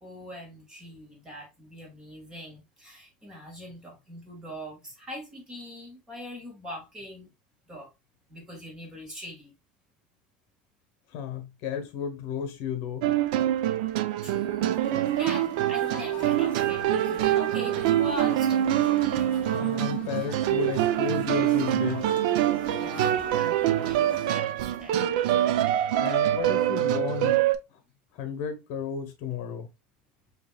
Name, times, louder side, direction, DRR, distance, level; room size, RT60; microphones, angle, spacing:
voice 1, 0.0-7.3 7.7-7.9 8.3-9.5 14.2-14.8 15.2-19.0 22.8-25.1, equal, 15° right, 2.0 m, -41 dB
voice 2, 11.1-13.1 19.5-22.1 26.0-27.4 28.1-29.7, left 7 dB, 55° left, 1.0 m, -33 dB
sound 1, 13.0-27.6, right 12 dB, 75° right, 0.5 m, -25 dB
sound 2, 14.7-24.3, left 8 dB, 30° left, 0.9 m, -44 dB
Human voice / Acoustic guitar, 15.7-23.7, right 4 dB, 30° right, 1.1 m, -46 dB
6.6 x 2.9 x 2.3 m
cardioid pair, 170°, 4 cm